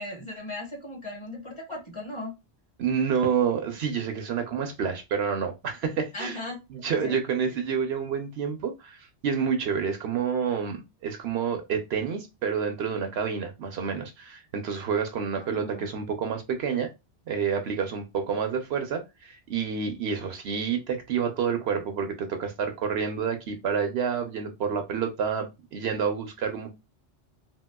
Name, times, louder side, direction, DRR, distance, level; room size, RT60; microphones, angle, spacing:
voice 1, 0.0-2.3 6.1-6.6 7.0-7.2 7.5-7.6 15.3-15.9, left 1 dB, 25° left, 1.1 m, -37 dB
voice 2, 2.8-6.4 6.7-16.9 17.3-26.7, right 6 dB, 70° right, 0.8 m, -29 dB
3.1 x 2.8 x 2.2 m
omnidirectional pair, 1.2 m